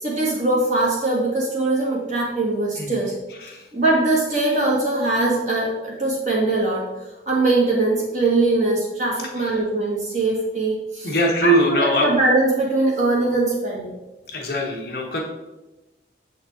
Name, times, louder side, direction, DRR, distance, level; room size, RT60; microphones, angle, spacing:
voice 1, 0.0-3.1 3.7-6.8 7.3-11.1 11.4-13.9, right 2 dB, 40° right, -4 dB, 1.7 m, -21 dB
voice 2, 3.3-3.7 9.2-9.6 11.0-12.1 14.3-15.2, right 1 dB, 55° left, 0 dB, 1.1 m, -22 dB
7.5 x 3.9 x 3.5 m, 1.0 s
head